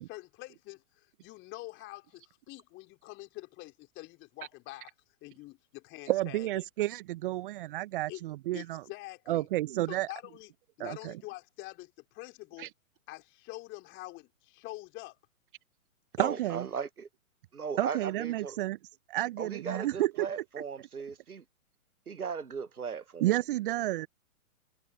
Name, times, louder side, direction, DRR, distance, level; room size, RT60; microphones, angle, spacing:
voice 1, 0.1-4.9 5.2-6.5 8.1-8.2 8.5-9.5 9.9-10.5 10.8-12.7 13.1-15.2 16.2-16.4, left 19 dB, 25° left, 4.3 m, -46 dB
voice 2, 6.1-8.8 9.3-10.1 10.8-11.1 12.6-12.7 16.2-16.7 17.8-18.8 19.1-20.3 23.2-24.1, right 16 dB, 35° right, 1.1 m, -31 dB
voice 3, 16.2-17.1 17.5-18.6 19.4-21.4 22.1-23.3, right 6 dB, 85° right, 1.0 m, -37 dB
figure-of-eight pair, 120°, 43 cm